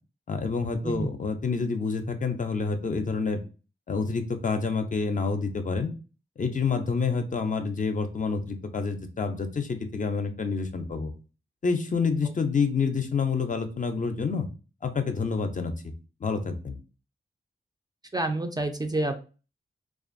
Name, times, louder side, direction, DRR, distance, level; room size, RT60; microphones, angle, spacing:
voice 1, 0.3-3.4 3.9-5.9 6.4-11.1 11.6-14.5 14.8-15.7 16.2-16.8, left 4 dB, 40° left, 6 dB, 0.5 m, -28 dB
voice 2, 18.1-19.2, right 2 dB, 20° right, 6 dB, 0.4 m, -28 dB
2.5 x 2.4 x 2.5 m, 0.34 s
cardioid pair, 55°, 20 cm